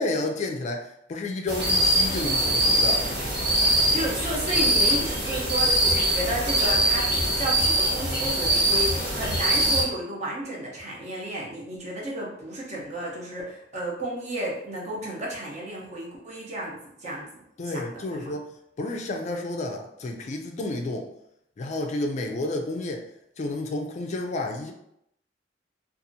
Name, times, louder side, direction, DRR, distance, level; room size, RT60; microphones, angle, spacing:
voice 1, 0.0-3.1 17.6-21.1 21.6-23.0 23.4-24.7, left 2 dB, 40° left, 3 dB, 0.3 m, -31 dB
sound 1, 1.5-9.8, right 1 dB, 60° right, 1.4 m, -23 dB
voice 2, 3.9-17.3 17.7-18.3, right 1 dB, 40° right, -4 dB, 0.8 m, -33 dB
2.7 x 2.4 x 2.6 m, 0.77 s
head